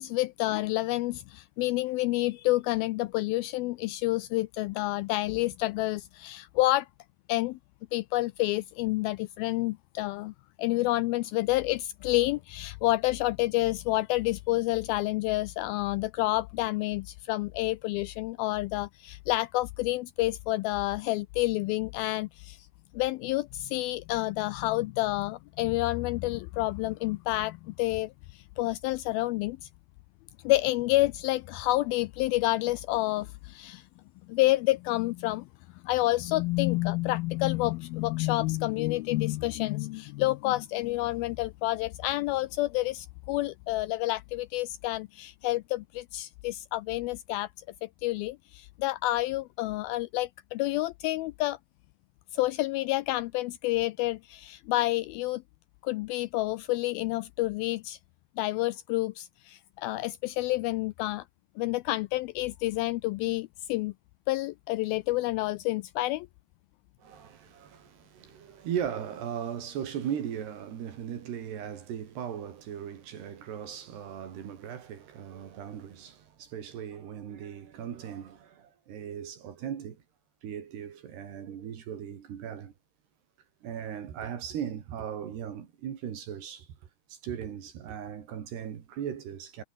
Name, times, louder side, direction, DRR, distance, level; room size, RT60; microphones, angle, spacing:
voice 1, 0.0-6.9 7.3-7.6 7.9-10.3 10.6-22.7 22.9-29.6 30.4-33.8 34.3-35.5 35.8-47.5 47.8-51.6 52.3-55.4 55.8-58.0 58.4-61.2 61.6-63.9 64.3-66.3, left 18 dB, 85° left, 2.1 m, -29 dB
voice 2, 67.0-80.0 80.4-82.7 83.6-86.7 87.1-89.6, right 9 dB, 75° right, 4.7 m, -38 dB
omnidirectional pair, 4.8 m